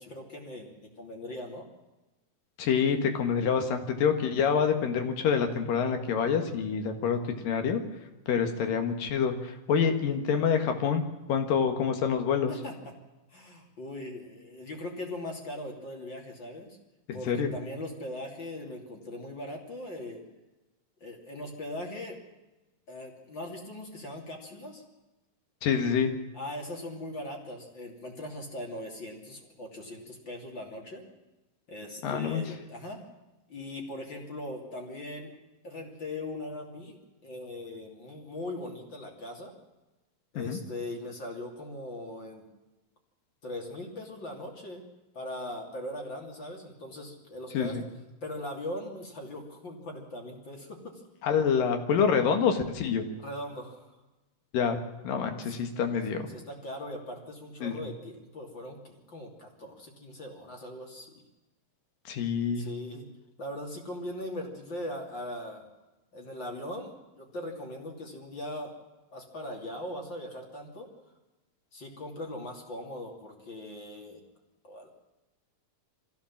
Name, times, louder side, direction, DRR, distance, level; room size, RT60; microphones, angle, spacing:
voice 1, 0.0-1.7 11.4-11.6 12.5-12.7 13.3-16.8 17.1-20.2 21.0-22.2 22.9-24.8 26.3-31.0 31.7-33.0 33.5-35.3 35.6-39.5 40.3-42.4 43.4-44.8 45.1-47.8 48.2-51.0 53.2-54.0 55.4-55.9 56.3-61.2 62.5-63.1 63.4-65.7 66.1-68.7 69.1-70.9 71.7-74.2 74.6-74.9, left 1 dB, 35° left, 1 dB, 3.3 m, -40 dB
voice 2, 2.6-7.8 8.3-11.0 11.3-12.5 17.1-17.5 25.6-26.1 32.0-32.4 40.4-40.6 47.5-47.8 51.2-53.1 54.5-54.8 55.0-56.3 57.6-57.8 62.1-62.7, left 6 dB, 75° left, 6 dB, 3.5 m, -27 dB
23.0 x 15.5 x 7.4 m, 1.1 s
omnidirectional pair, 4.0 m